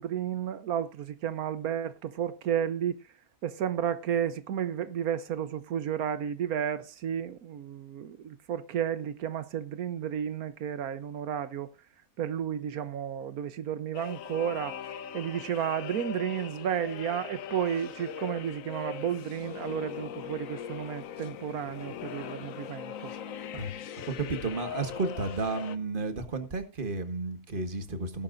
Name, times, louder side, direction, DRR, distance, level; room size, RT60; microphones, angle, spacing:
voice 1, 0.0-3.0 3.4-11.7 12.2-14.8 15.1-23.1, right 9 dB, 85° right, 1.3 m, -32 dB
sound 1, 13.9-25.8, left 8 dB, 65° left, 1.2 m, -40 dB
voice 2, 24.2-28.2, right 3 dB, 35° right, 1.7 m, -32 dB
18.0 x 11.5 x 2.5 m
omnidirectional pair, 1.5 m